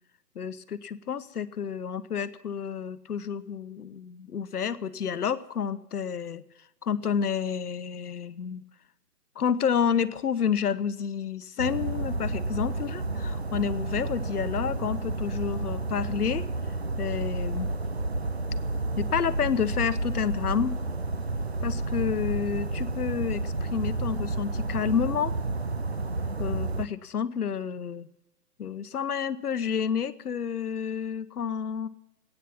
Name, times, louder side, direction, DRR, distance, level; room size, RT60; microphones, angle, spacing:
voice 1, 0.3-6.4 6.8-8.6 9.4-16.5 17.0-17.7 19.0-20.8 21.6-25.4 26.4-28.1 28.6-31.9, left 7 dB, 70° left, 13 dB, 1.0 m, -29 dB
sound 1, 11.6-26.9, right 2 dB, 45° right, 0.5 m, -31 dB
20.0 x 9.3 x 7.1 m, 0.95 s
hypercardioid pair, 180°, 47 cm